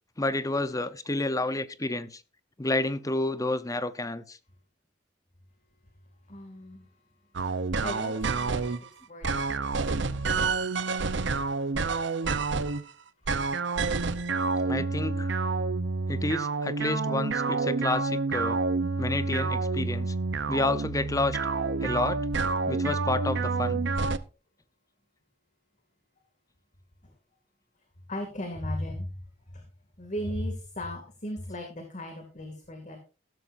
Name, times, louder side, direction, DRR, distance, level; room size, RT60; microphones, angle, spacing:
voice 1, 0.2-2.2 2.6-4.4 14.7-15.3 16.1-18.6 19.0-20.1 20.5-21.4 21.8-22.2 22.7-23.8, left 2 dB, 20° left, 0.8 m, -30 dB
voice 2, 6.3-6.8 7.8-9.3 9.5-9.7 10.1-10.4 28.1-29.1 29.5-29.6 30.0-33.0, left 1 dB, 40° left, 2.5 m, -36 dB
sound 1, 7.3-8.8 9.2-12.8 13.2-24.2, right 4 dB, 70° right, 0.8 m, -28 dB
15.5 x 13.0 x 2.7 m
head